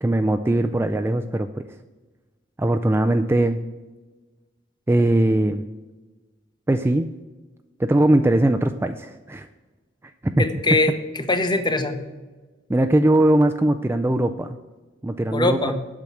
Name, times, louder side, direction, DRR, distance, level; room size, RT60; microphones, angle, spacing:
voice 1, 0.0-1.5 2.6-3.6 4.9-5.6 6.7-7.1 7.8-9.5 10.2-10.4 12.7-14.6 15.0-15.7, right 1 dB, 15° right, 7 dB, 0.4 m, -20 dB
voice 2, 10.4-12.1 15.3-15.8, left 2 dB, 25° left, 8 dB, 0.9 m, -22 dB
8.6 x 6.2 x 7.7 m, 1.2 s
head